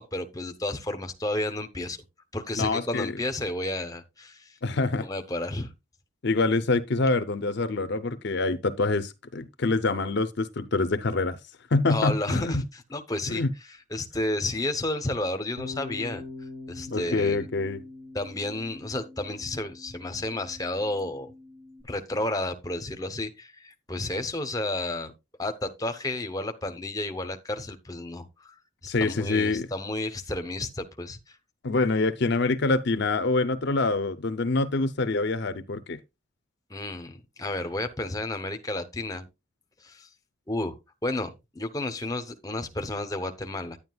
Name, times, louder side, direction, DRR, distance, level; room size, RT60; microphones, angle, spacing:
voice 1, 0.0-2.0 2.3-4.6 5.0-5.7 11.9-16.3 16.7-17.5 18.1-21.3 21.8-25.1 25.4-28.5 28.8-31.4 36.7-39.3 39.8-40.1 40.5-40.8 41.0-43.8, left 1 dB, 15° left, 0.8 m, -32 dB
voice 2, 2.6-3.1 4.6-5.1 6.2-11.4 11.7-12.6 13.3-13.5 16.9-17.8 28.9-29.7 31.6-36.0, left 3 dB, 55° left, 0.6 m, -25 dB
Bass guitar, 15.6-21.8, left 2 dB, 70° right, 2.6 m, -43 dB
10.0 x 9.5 x 2.3 m
head